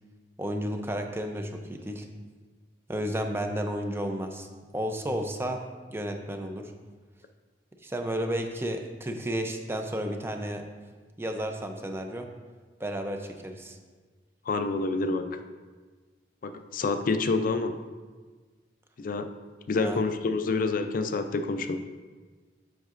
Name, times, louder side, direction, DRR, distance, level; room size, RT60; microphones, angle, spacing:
voice 1, 0.4-2.1 2.9-4.5 4.7-5.6 5.9-6.7 7.8-10.6 11.2-12.2 12.8-13.8 19.8-20.0, equal, 15° right, 4 dB, 0.5 m, -32 dB
voice 2, 14.5-15.3 16.4-17.7 19.0-19.3 19.7-21.8, left 3 dB, 50° left, 8 dB, 0.4 m, -27 dB
8.0 x 5.8 x 2.5 m, 1.4 s
head